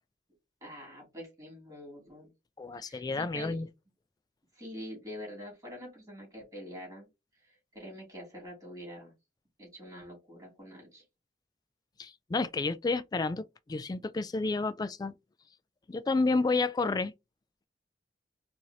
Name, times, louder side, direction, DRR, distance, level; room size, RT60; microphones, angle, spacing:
voice 1, 0.6-2.3 2.8-3.6 4.5-7.1 7.4-9.1 9.6-11.0, equal, 20° right, 2.6 m, -45 dB
voice 2, 2.6-3.7 12.0-15.1 15.9-17.1, left 3 dB, 25° left, 0.3 m, -30 dB
4.7 x 2.7 x 2.8 m
head